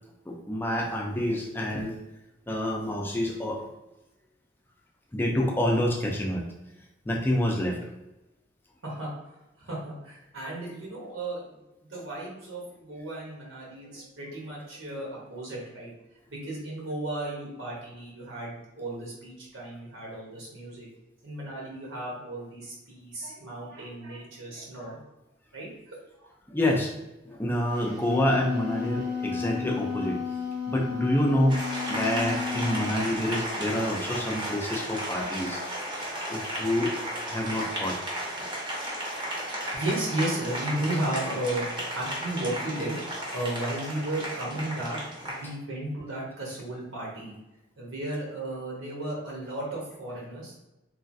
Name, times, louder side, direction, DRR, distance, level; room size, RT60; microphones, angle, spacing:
voice 1, 0.3-2.0 2.5-3.7 5.1-6.4 7.1-7.8 26.5-26.9 27.2-30.2 30.7-35.6 36.3-36.9 37.3-38.0, left 1 dB, 10° left, -1 dB, 0.4 m, -27 dB
voice 2, 8.8-15.9 16.3-20.9 21.2-25.0 25.5-26.3 39.7-47.3 47.8-50.5, right 1 dB, 80° right, -4 dB, 1.1 m, -34 dB
Wind instrument woodwind instrument, 27.8-33.0, left 6 dB, 60° right, 0.7 m, -32 dB
Applause, 31.5-45.5, equal, 25° right, 0.7 m, -34 dB
3.1 x 2.4 x 2.6 m, 0.99 s
head